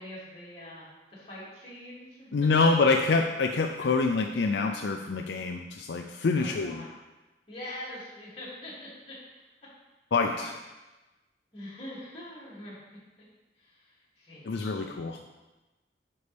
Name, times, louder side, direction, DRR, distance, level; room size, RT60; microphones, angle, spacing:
voice 1, 0.0-2.3 6.4-7.0 7.5-8.7 9.1-9.2 11.5-12.8 13.5-15.2, left 1 dB, 30° left, -8 dB, 2.7 m, -44 dB
voice 2, 2.3-6.8 10.1-10.6 14.5-15.2, left 4 dB, 75° left, 4 dB, 0.4 m, -26 dB
9.5 x 5.3 x 3.4 m, 1.1 s
head